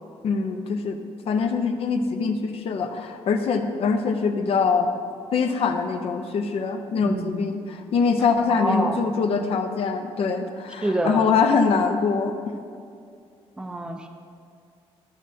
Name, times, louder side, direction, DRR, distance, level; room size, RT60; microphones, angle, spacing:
voice 1, 0.2-4.9 5.3-12.4, left 5 dB, 65° left, 6 dB, 0.7 m, -23 dB
voice 2, 6.9-7.5 8.5-9.0 10.8-11.3 13.6-14.1, right 1 dB, 10° right, 4 dB, 0.5 m, -27 dB
14.0 x 6.3 x 2.7 m, 2.3 s
cardioid pair, 160°, 11 cm